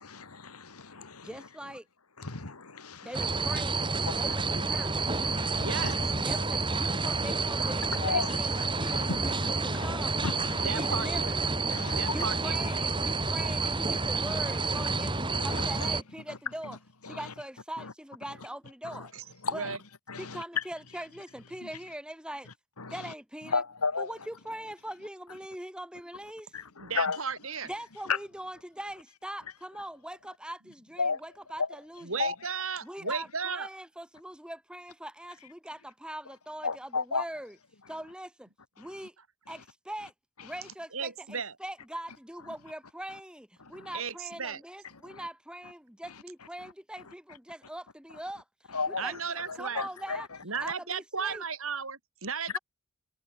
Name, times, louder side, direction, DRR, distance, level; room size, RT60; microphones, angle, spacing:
voice 1, 0.0-1.3 2.2-3.1 4.0-4.2 5.2-5.9 7.9-9.4 9.7-9.9 10.2-10.8 11.7-12.1 15.3-15.9 17.0-17.3 17.8-17.9 18.8-19.1 19.4-19.8 20.1-20.6 22.8-23.0 23.5-24.1 26.5-27.2 28.1-28.2 31.0-31.2 31.6-31.7 32.2-32.3 36.6-37.2 43.6-43.9 45.1-45.2 48.7-49.0 49.5-50.3, left 4 dB, 90° left, 2.4 m, -33 dB
voice 2, 1.2-1.9 3.0-4.9 6.2-10.3 10.6-11.4 11.8-16.8 17.0-19.1 19.5-19.7 20.2-22.5 22.9-23.6 24.0-26.5 27.6-32.2 32.8-37.6 37.9-38.5 38.8-39.1 39.5-40.1 40.4-48.4 48.9-50.3 50.6-51.4, right 1 dB, 5° right, 7.7 m, -42 dB
sound 1, 3.1-16.0, right 3 dB, 20° right, 3.6 m, -29 dB
voice 3, 5.5-6.0 10.6-11.4 11.9-12.6 19.1-19.2 19.5-19.8 26.8-27.7 32.0-33.7 40.9-41.5 43.9-44.6 49.0-49.8 50.4-52.6, right 5 dB, 70° right, 4.6 m, -35 dB
head